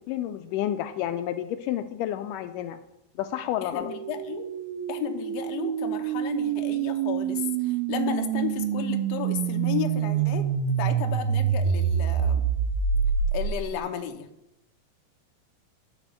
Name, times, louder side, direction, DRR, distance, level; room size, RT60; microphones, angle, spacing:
voice 1, 0.1-2.8 3.2-3.9, left 11 dB, 90° left, 9 dB, 1.8 m, -30 dB
voice 2, 3.6-4.5 4.9-10.5 10.8-12.5 13.3-14.3, left 9 dB, 70° left, 5 dB, 1.6 m, -33 dB
sound 1, 3.7-13.8, right 8 dB, 90° right, 2.6 m, -26 dB
12.5 x 5.2 x 7.0 m, 0.85 s
omnidirectional pair, 4.3 m